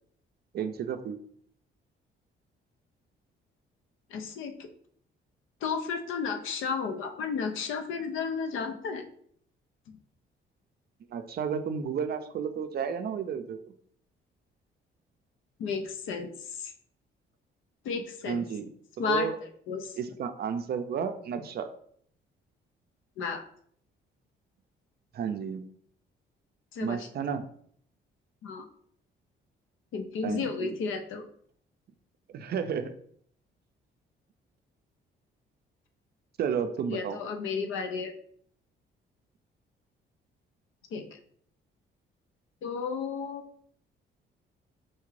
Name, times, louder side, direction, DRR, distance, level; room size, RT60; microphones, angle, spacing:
voice 1, 0.5-1.2 11.1-13.6 18.3-18.7 19.0-19.3 20.0-21.7 25.1-25.6 26.8-27.4 30.2-30.7 32.3-32.9 36.4-37.2, right 7 dB, 55° right, 9 dB, 0.4 m, -32 dB
voice 2, 4.1-4.7 5.6-9.1 15.6-16.7 17.8-18.4 19.0-19.3 19.7-20.0 23.2-23.4 26.7-27.1 28.4-28.7 29.9-31.2 36.9-38.1 40.9-41.2 42.6-43.4, left 5 dB, 80° left, 7 dB, 0.6 m, -33 dB
4.3 x 2.4 x 3.1 m, 0.63 s
cardioid pair, 90°, 20 cm